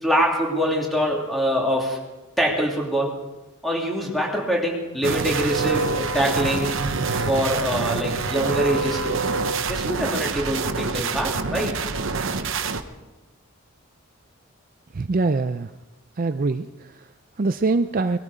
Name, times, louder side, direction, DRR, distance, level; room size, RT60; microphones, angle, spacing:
voice 1, 0.0-2.0 2.4-3.2 3.6-9.2 9.7-11.7, equal, ahead, -2 dB, 2.9 m, -24 dB
sound 1, 5.0-12.8, right 4 dB, 70° right, 0.9 m, -26 dB
voice 2, 14.9-15.7 16.2-18.2, right 3 dB, 40° right, 10 dB, 0.4 m, -24 dB
20.5 x 13.5 x 5.0 m, 1.1 s
head